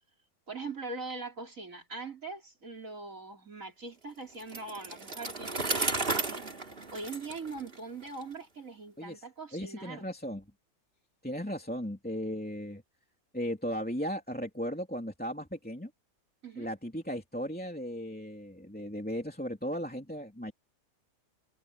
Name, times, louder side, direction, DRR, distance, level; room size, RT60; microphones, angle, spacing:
voice 1, 0.5-10.1 16.4-16.7, right 3 dB, 60° right, 4.3 m, -42 dB
Bicycle, 4.4-8.2, right 3 dB, 40° right, 2.7 m, -34 dB
voice 2, 9.5-10.4 11.2-12.8 13.3-15.9 16.6-20.5, equal, 5° left, 2.9 m, -36 dB
omnidirectional pair, 1.6 m